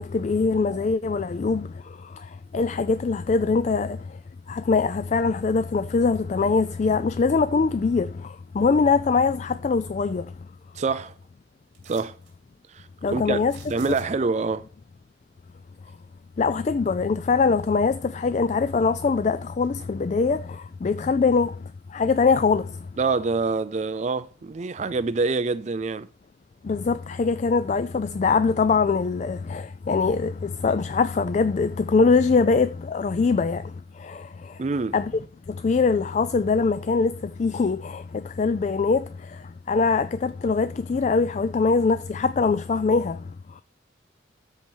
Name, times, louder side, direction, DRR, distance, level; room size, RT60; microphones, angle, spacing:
voice 1, 0.0-4.2 4.5-10.4 13.0-13.5 13.9-14.0 16.4-22.9 26.6-34.6 34.9-35.2 35.5-43.6, left 4 dB, 35° left, 0.3 m, -23 dB
voice 2, 10.8-11.1 11.9-12.2 12.7-13.4 13.7-14.7 23.0-26.1 34.6-34.9, right 4 dB, 35° right, 0.4 m, -26 dB
sound 1, 11.7-12.3 13.4-14.4 16.9-17.0 17.5-18.2 18.6-19.7 20.1-20.2, right 7 dB, 65° right, 2.7 m, -51 dB
13.0 x 4.6 x 4.5 m
head